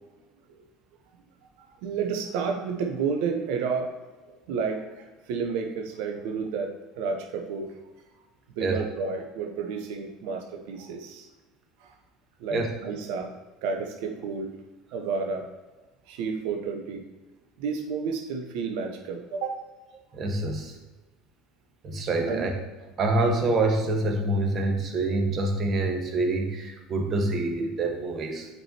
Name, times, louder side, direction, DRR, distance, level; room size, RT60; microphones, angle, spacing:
voice 1, 1.6-4.0 4.5-7.7 8.6-11.3 11.8-11.9 12.4-13.3 13.6-14.5 14.9-15.5 16.1-17.0 17.6-19.6 22.3-22.5, right 5 dB, 65° right, 3 dB, 0.8 m, -31 dB
voice 2, 20.1-20.7 21.8-22.5 23.0-28.5, right 2 dB, 40° right, 3 dB, 1.4 m, -26 dB
8.9 x 4.6 x 2.9 m, 1.2 s
figure-of-eight pair, 70°, 0 cm